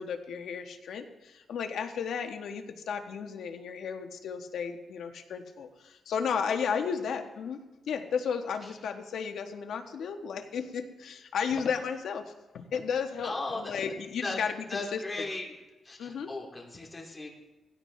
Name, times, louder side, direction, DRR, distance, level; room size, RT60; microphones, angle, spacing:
voice 1, 0.0-7.6 7.9-15.2 16.0-16.3, left 6 dB, 75° left, 5 dB, 1.3 m, -34 dB
voice 2, 13.2-13.7 14.2-14.4 14.7-15.5 15.8-17.3, left 2 dB, 20° left, -1 dB, 2.5 m, -36 dB
18.0 x 16.0 x 3.3 m, 1.1 s
wide cardioid pair, 170°, 0 cm